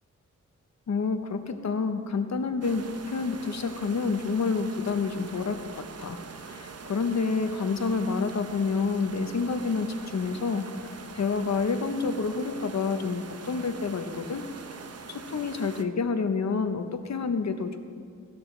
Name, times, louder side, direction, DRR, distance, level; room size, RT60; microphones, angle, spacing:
voice 1, 0.9-5.6 6.0-6.2 6.5-10.7 11.1-14.4 15.1-17.8, left 4 dB, 60° left, 7 dB, 1.0 m, -28 dB
sound 1, 2.6-15.8, right 5 dB, 55° right, 0.8 m, -43 dB
17.5 x 12.0 x 3.3 m, 2.2 s
wide cardioid pair, 95°, 31 cm